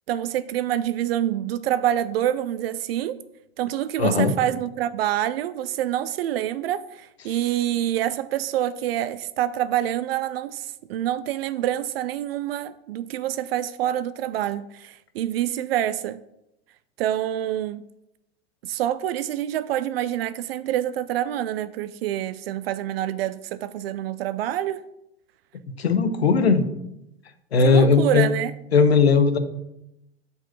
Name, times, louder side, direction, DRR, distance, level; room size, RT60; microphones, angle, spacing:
voice 1, 0.1-3.2 3.6-16.2 17.0-17.9 18.6-24.8 27.6-28.5, right 12 dB, 75° right, 0.4 m, -26 dB
voice 2, 4.0-4.3 25.8-26.7 27.5-28.3 28.7-29.4, left 4 dB, 90° left, 0.8 m, -18 dB
6.4 x 4.7 x 5.9 m
hypercardioid pair, 85°, 31 cm